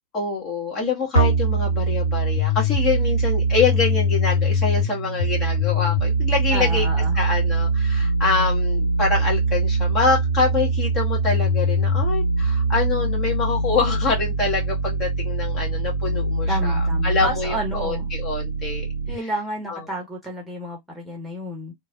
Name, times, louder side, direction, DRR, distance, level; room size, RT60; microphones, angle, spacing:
voice 1, 0.1-6.9 7.1-16.8 17.0-18.9 19.7-19.8, left 4 dB, 30° left, 1.4 m, -25 dB
sound 1, 1.1-19.1, right 1 dB, 90° left, 0.7 m, -22 dB
voice 2, 6.5-7.2 16.5-18.1 19.1-21.7, equal, ahead, 1.2 m, -31 dB
3.3 x 2.1 x 2.5 m
figure-of-eight pair, 90°, 0 cm